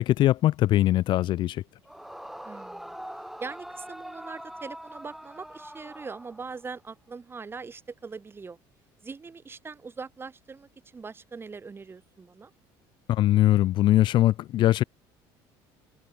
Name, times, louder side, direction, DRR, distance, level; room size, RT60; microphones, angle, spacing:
voice 1, 0.0-1.6 13.1-14.8, left 14 dB, 55° left, 0.5 m, -21 dB
Yell / Screaming, 1.8-6.8, equal, ahead, 1.8 m, -43 dB
voice 2, 2.4-3.0 3.4-8.6 9.0-12.5, right 4 dB, 25° right, 3.8 m, -41 dB
supercardioid pair, 105°, 10 cm